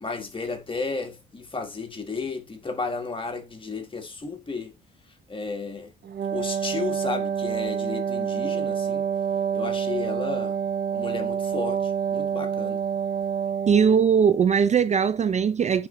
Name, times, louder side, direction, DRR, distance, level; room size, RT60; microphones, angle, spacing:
voice 1, 0.0-4.7 5.3-5.9 6.3-9.1 9.5-10.6 10.9-12.8, left 4 dB, 25° left, 1.8 m, -33 dB
Wind instrument woodwind instrument, 6.0-14.0, right 7 dB, 55° right, 1.0 m, -27 dB
voice 2, 13.7-15.9, right 7 dB, 35° right, 0.4 m, -20 dB
9.5 x 4.2 x 3.3 m
cardioid pair, 90°, 20 cm